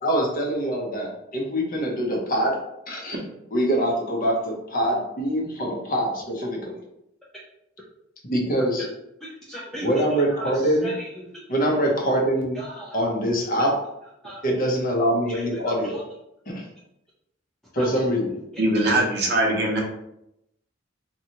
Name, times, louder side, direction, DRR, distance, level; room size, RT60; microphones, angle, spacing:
voice 1, 0.0-2.6 2.9-3.2 3.5-6.8 8.2-8.9 9.8-10.9 11.5-12.6 12.9-13.8 14.4-16.0 16.5-16.6 17.7-18.4, equal, 45° left, -1 dB, 0.7 m, -24 dB
voice 2, 9.2-10.2 10.8-11.3 12.5-13.0 14.2-14.4 15.3-15.4 15.8-15.9 17.8-17.9 18.7-18.8, equal, ahead, -7 dB, 0.4 m, -36 dB
voice 3, 18.6-19.8, right 1 dB, 55° right, -1 dB, 0.7 m, -21 dB
2.8 x 2.3 x 2.8 m, 0.83 s
head